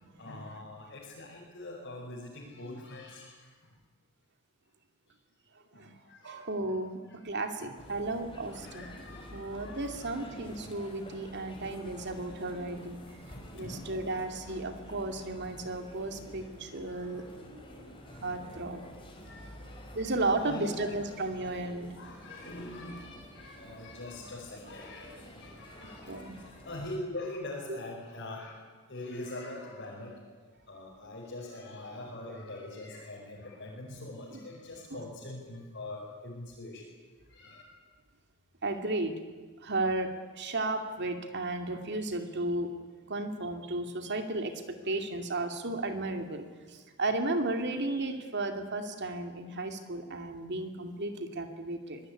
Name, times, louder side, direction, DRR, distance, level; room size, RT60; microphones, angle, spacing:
voice 1, 0.2-3.8 5.7-6.8 7.0-7.8 8.5-10.5 13.0-14.8 16.8-21.1 21.5-30.3 30.7-36.9 37.2-37.6, left 1 dB, 50° left, -4 dB, 5.4 m, -44 dB
voice 2, 6.2-7.0 7.2-8.9 9.3-13.0 13.5-17.3 18.2-18.8 19.9-21.9 26.1-26.3 34.3-34.4 38.6-39.2 39.6-42.7 43.1-52.0, right 2 dB, 50° right, 6 dB, 2.6 m, -34 dB
sound 1, 7.8-27.0, equal, 25° left, 5.1 m, -49 dB
24.0 x 19.5 x 9.8 m, 1.4 s
head